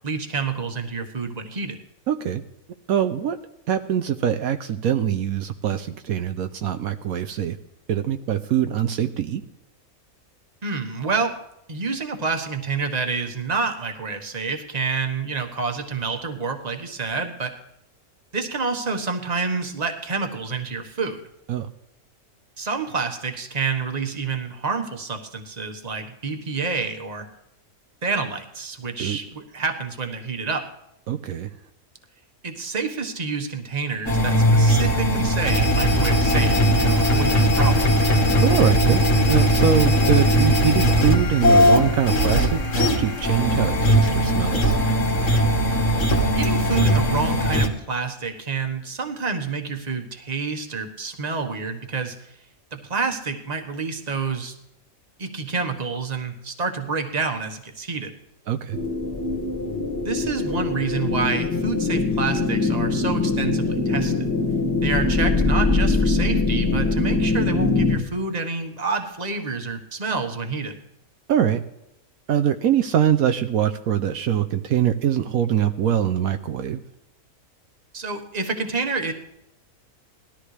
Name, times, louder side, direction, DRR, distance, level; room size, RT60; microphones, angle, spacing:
voice 1, 0.0-1.8 10.6-11.3 11.7-17.5 18.3-21.2 22.6-27.3 28.0-30.6 32.4-38.0 46.3-52.3 52.7-54.5 55.2-58.1 60.0-64.3 64.8-70.8 77.9-79.1, right 4 dB, 30° right, 4 dB, 1.4 m, -28 dB
voice 2, 2.1-2.4 2.9-3.4 3.7-7.5 7.9-9.4 21.5-21.7 29.0-29.2 31.1-31.5 38.4-39.0 39.3-44.8 58.5-58.8 71.3-71.6 72.3-76.8, right 9 dB, 75° right, 8 dB, 1.1 m, -23 dB
sound 1, 34.1-47.7, equal, 55° left, 2.0 m, -19 dB
sound 2, 58.7-68.0, left 3 dB, 15° left, 1.4 m, -22 dB
19.5 x 13.5 x 3.3 m, 0.83 s
omnidirectional pair, 1.6 m